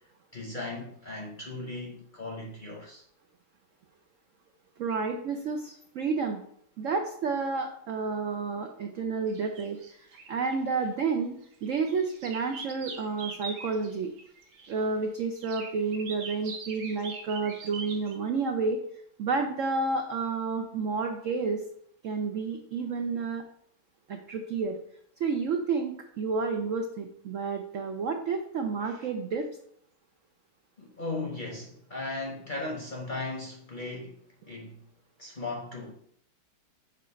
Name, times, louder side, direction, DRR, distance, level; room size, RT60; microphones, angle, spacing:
voice 1, 0.3-3.0 30.8-34.8 35.2-35.9, left 2 dB, 40° left, 0.8 m, -37 dB
voice 2, 4.8-6.4 6.8-11.3 11.6-14.1 14.7-18.8 19.2-21.6 22.0-23.4 24.1-24.8 25.2-29.5, right 4 dB, 75° right, 0.7 m, -30 dB
sound 1, 9.3-10.9 11.4-14.7 15.4-18.2, right 4 dB, 55° right, 1.2 m, -42 dB
7.1 x 2.4 x 5.6 m
omnidirectional pair, 2.0 m